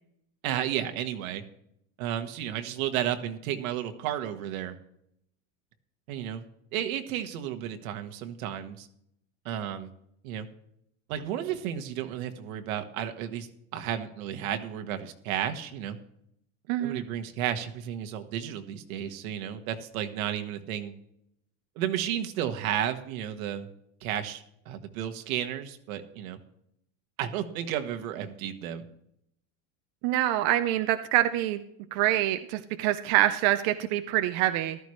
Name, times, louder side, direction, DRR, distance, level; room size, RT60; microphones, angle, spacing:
voice 1, 0.4-1.4 2.0-4.8 6.1-6.4 6.7-8.9 9.4-9.9 10.2-10.5 11.1-16.0 16.8-20.9 21.7-23.7 24.0-26.4 27.2-28.8, right 10 dB, 85° right, 7 dB, 1.6 m, -32 dB
voice 2, 16.7-17.0 30.0-31.6 31.9-34.8, right 14 dB, 55° right, 9 dB, 0.7 m, -25 dB
14.5 x 13.5 x 3.2 m, 0.74 s
cardioid pair, 160°, 41 cm